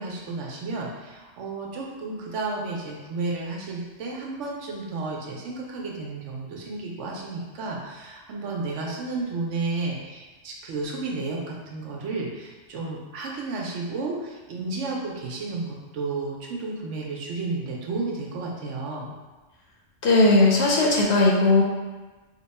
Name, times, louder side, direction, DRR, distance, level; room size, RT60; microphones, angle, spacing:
voice 1, 0.0-19.1, right 3 dB, 75° right, -2 dB, 1.0 m, -32 dB
voice 2, 20.0-21.6, left 2 dB, 65° left, -2 dB, 0.8 m, -18 dB
2.8 x 2.2 x 4.1 m, 1.2 s
omnidirectional pair, 1.3 m